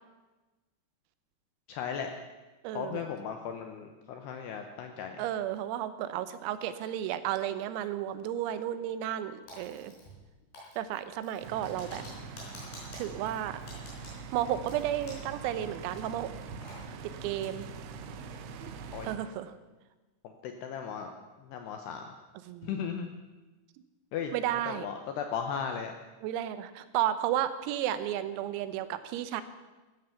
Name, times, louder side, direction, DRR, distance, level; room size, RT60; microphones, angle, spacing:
voice 1, 1.7-2.1 2.7-5.1 18.9-19.1 20.2-21.1 21.5-22.1 22.6-23.1 24.1-24.3 24.7-25.9, left 7 dB, 80° left, 5 dB, 2.4 m, -36 dB
voice 2, 2.6-3.0 5.2-9.9 10.8-12.0 12.9-13.6 14.3-16.3 17.0-17.7 18.6-18.7 19.1-19.5 22.4-22.8 24.3-24.9 26.2-29.4, right 11 dB, 90° right, 12 dB, 3.7 m, -33 dB
Typing, 9.5-10.3 10.5-15.4 15.6-15.7 16.2-16.8, left 1 dB, 50° left, 6.3 m, -49 dB
sound 1, 11.4-19.2, right 5 dB, 75° right, 3.1 m, -43 dB
14.0 x 13.5 x 7.0 m, 1.2 s
omnidirectional pair, 5.9 m